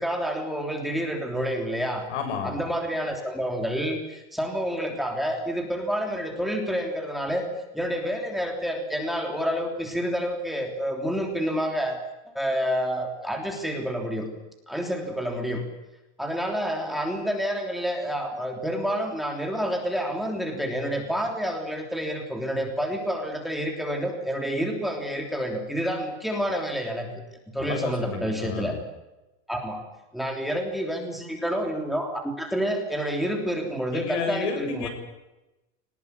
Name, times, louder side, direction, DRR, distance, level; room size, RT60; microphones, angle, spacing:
voice 1, 0.0-2.1 2.4-7.5 7.7-12.0 12.2-14.3 14.7-15.6 16.2-27.1 27.5-28.7 29.5-29.8 30.1-34.9, equal, ahead, 2 dB, 3.3 m, -28 dB
voice 2, 2.1-2.7 27.6-28.8 33.9-34.9, left 5 dB, 80° left, 6 dB, 7.1 m, -31 dB
23.0 x 19.5 x 9.6 m, 1.0 s
supercardioid pair, 160°, 35 cm